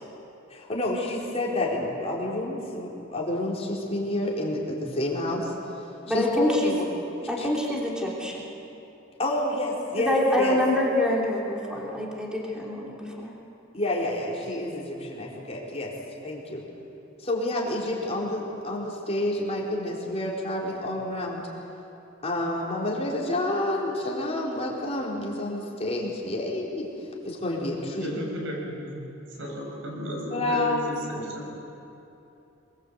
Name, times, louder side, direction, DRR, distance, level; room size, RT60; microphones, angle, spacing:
voice 1, 0.5-5.5 6.1-6.9 7.4-7.5 9.2-10.6 13.7-15.9 16.2-16.6 17.2-21.4 22.2-26.9 27.2-28.1 30.3-30.9 31.2-31.3, left 1 dB, 30° left, -3 dB, 4.3 m, -29 dB
voice 2, 6.1-6.8 7.3-8.4 10.0-13.3, left 1 dB, 5° right, -3 dB, 3.1 m, -26 dB
voice 3, 28.0-31.5, equal, 75° right, -1 dB, 6.5 m, -34 dB
23.5 x 22.0 x 8.3 m, 2.9 s
head